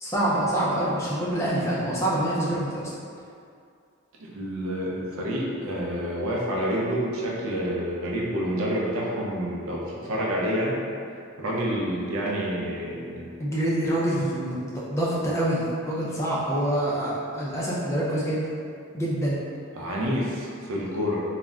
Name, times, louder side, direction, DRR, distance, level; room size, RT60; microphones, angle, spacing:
voice 1, 0.0-2.9 13.4-18.5 18.9-19.4, right 1 dB, 15° left, -6 dB, 0.3 m, -26 dB
voice 2, 4.2-10.8 11.4-13.2 19.7-21.2, equal, 80° right, -4 dB, 0.5 m, -28 dB
2.3 x 2.0 x 3.5 m, 2.4 s
head